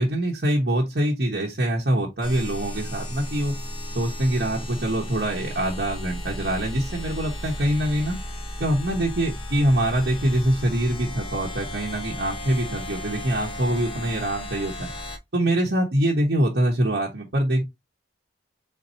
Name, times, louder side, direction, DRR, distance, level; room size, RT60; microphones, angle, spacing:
voice 1, 0.0-3.6 3.9-8.2 8.6-14.9 15.3-17.6, right 1 dB, 60° right, 1.1 m, -24 dB
sound 1, 2.2-15.2, left 1 dB, 30° left, 0.7 m, -34 dB
4.3 x 4.0 x 2.6 m
head